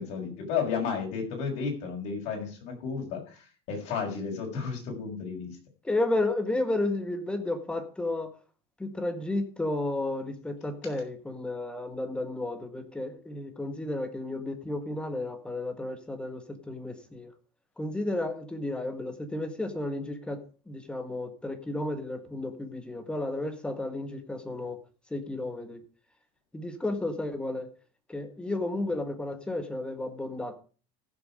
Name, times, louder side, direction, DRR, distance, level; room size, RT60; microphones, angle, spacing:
voice 1, 0.0-3.4 3.7-5.6, left 6 dB, 50° left, 6.6 m, -32 dB
voice 2, 5.8-8.3 8.8-17.3 17.8-20.4 20.7-24.8 25.1-25.8 26.5-27.7 28.1-30.6, left 2 dB, 5° left, 1.7 m, -32 dB
15.0 x 7.2 x 5.0 m
supercardioid pair, 145°, 14 cm